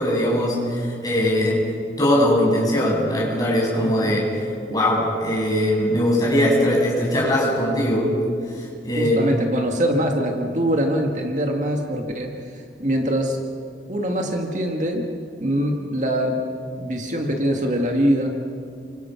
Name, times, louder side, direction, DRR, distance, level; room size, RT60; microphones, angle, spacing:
voice 1, 0.0-1.6 2.0-4.3 4.6-8.1 8.5-9.2, left 1 dB, 20° left, -4 dB, 7.7 m, -20 dB
voice 2, 3.8-4.1 9.0-13.4 13.9-15.1 15.4-16.4 16.8-18.3, equal, 40° right, 2 dB, 2.0 m, -23 dB
29.5 x 25.0 x 5.9 m, 2.4 s
head